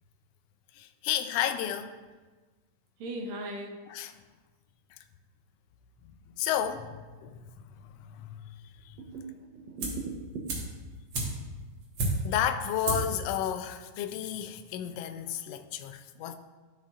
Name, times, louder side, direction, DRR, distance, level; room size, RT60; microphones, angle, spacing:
voice 1, 0.7-1.9 3.9-4.1 4.9-5.0 6.4-7.4 7.8-8.5 8.8-9.0 12.2-16.3, left 10 dB, 85° left, 1.4 m, -32 dB
voice 2, 3.0-3.8 9.0-10.4, right 2 dB, 75° right, 2.2 m, -38 dB
sound 1, 9.8-10.1 10.5-12.5 12.8-13.2 13.5-13.6, right 2 dB, 55° right, 2.3 m, -31 dB
13.5 x 5.6 x 2.4 m
omnidirectional pair, 3.4 m